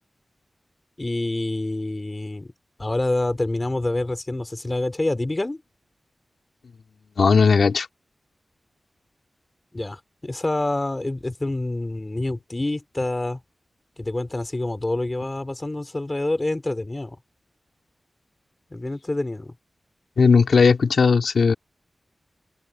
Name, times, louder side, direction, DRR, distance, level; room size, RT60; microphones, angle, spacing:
voice 1, 1.0-2.5 2.8-5.6 9.7-13.4 14.0-17.2 18.7-19.5, left 2 dB, 25° left, 2.8 m, -27 dB
voice 2, 7.2-7.9 20.2-21.5, left 5 dB, 80° left, 2.4 m, -17 dB
wide cardioid pair, 80°, 0 cm